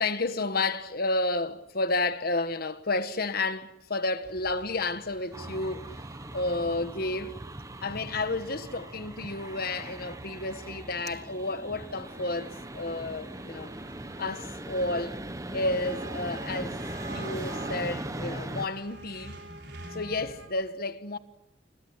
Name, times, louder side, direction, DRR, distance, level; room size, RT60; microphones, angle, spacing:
voice 1, 0.0-5.9 6.3-7.3 7.8-13.7 14.2-15.2 15.5-16.8 17.1-19.4 19.9-21.2, left 2 dB, 50° left, 1.5 m, -31 dB
sound 1, 4.2-20.5, right 1 dB, 60° right, 6.1 m, -48 dB
sound 2, 5.3-18.7, right 1 dB, 15° right, 1.3 m, -39 dB
29.0 x 21.5 x 8.3 m
head